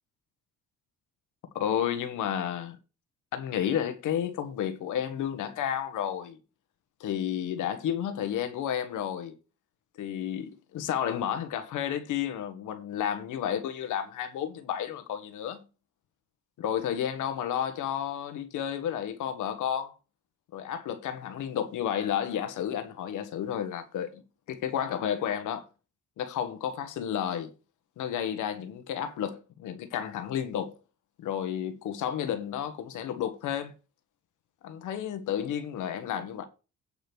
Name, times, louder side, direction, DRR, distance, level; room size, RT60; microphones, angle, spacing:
voice 1, 1.5-2.8 3.3-6.4 7.0-9.3 10.0-15.6 16.6-19.9 20.5-24.2 24.5-25.7 26.2-27.5 28.0-30.8 31.2-33.7 34.6-36.4, left 9 dB, 85° left, 1.5 m, -31 dB
8.8 x 5.1 x 6.2 m
cardioid pair, 90°, 30 cm